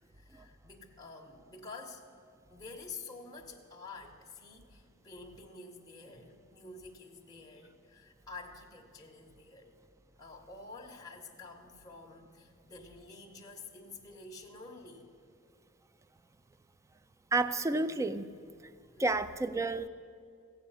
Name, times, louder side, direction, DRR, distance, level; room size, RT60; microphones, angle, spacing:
voice 1, 0.1-2.1 2.5-9.8 10.2-15.1 18.9-19.2, left 3 dB, 15° left, 0 dB, 1.0 m, -49 dB
voice 2, 17.3-18.2 19.0-19.9, right 3 dB, 15° right, 13 dB, 0.3 m, -30 dB
15.0 x 8.8 x 5.6 m, 2.3 s
head